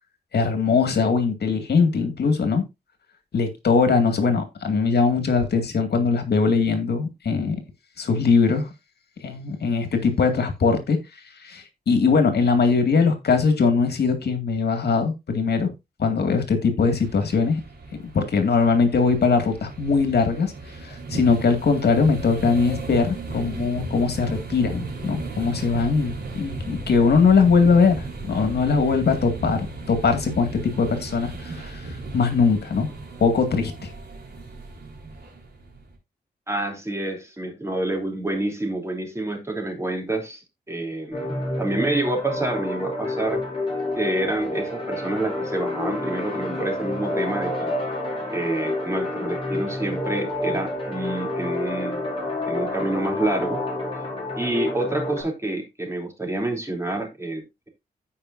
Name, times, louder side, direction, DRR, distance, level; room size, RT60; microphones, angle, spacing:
voice 1, 0.3-2.6 3.3-7.6 8.0-8.7 9.2-11.0 11.4-15.7 16.0-17.6 18.1-20.5 20.8-32.9 33.2-33.9, left 5 dB, 75° left, 2.1 m, -21 dB
sound 1, 16.9-35.9, right 2 dB, 85° right, 3.9 m, -36 dB
voice 2, 36.5-40.4 40.7-43.4 44.0-47.7 48.3-52.0 52.4-53.6 54.4-57.7, right 2 dB, 15° right, 3.1 m, -28 dB
sound 2, 41.1-55.2, left 2 dB, 35° left, 5.8 m, -29 dB
15.5 x 5.4 x 2.6 m
wide cardioid pair, 105°, 17 cm